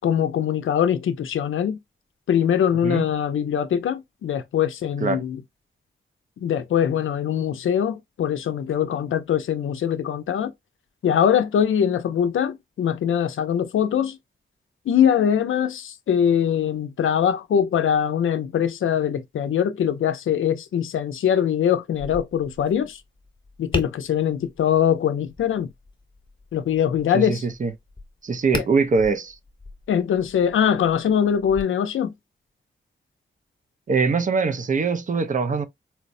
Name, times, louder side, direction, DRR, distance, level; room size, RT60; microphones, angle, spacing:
voice 1, 0.0-1.8 2.3-5.4 6.4-10.5 11.0-14.2 14.9-23.0 23.6-25.7 26.5-27.4 28.5-28.6 29.9-32.1, left 9 dB, 85° left, 0.4 m, -22 dB
Tap, 21.9-31.6, left 2 dB, 20° left, 0.9 m, -39 dB
voice 2, 27.1-27.7 28.2-29.4 33.9-35.6, right 4 dB, 40° right, 0.4 m, -22 dB
4.3 x 2.0 x 2.5 m
wide cardioid pair, 110°, 20 cm